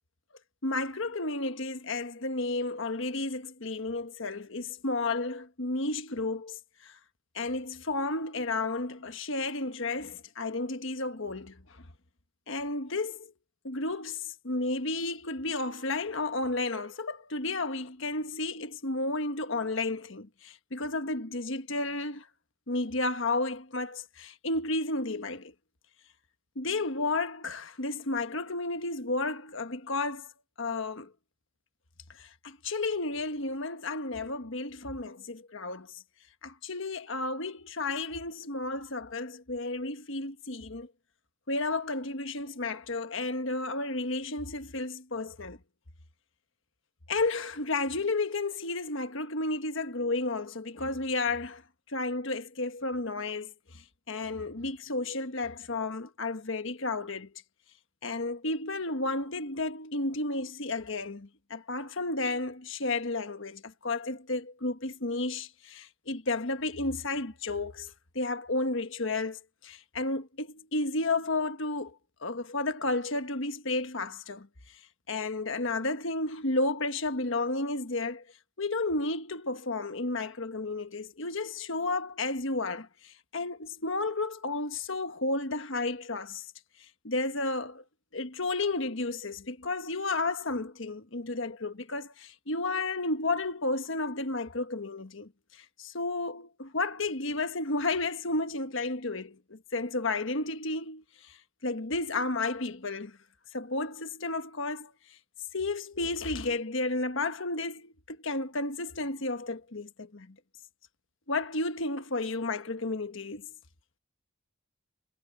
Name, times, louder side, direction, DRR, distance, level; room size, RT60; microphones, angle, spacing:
voice 1, 0.6-6.9 7.3-11.6 12.5-13.3 13.6-22.2 22.7-25.5 26.5-30.3 30.6-31.1 32.2-35.9 36.4-40.9 41.5-45.6 47.1-51.6 51.9-53.5 54.1-57.3 58.0-71.9 72.2-74.5 75.1-78.2 78.6-86.5 87.0-87.8 88.1-95.3 95.8-101.0 101.6-103.2 103.5-104.9 105.5-110.3 111.3-113.5, left 2 dB, 60° left, 1.4 m, -32 dB
head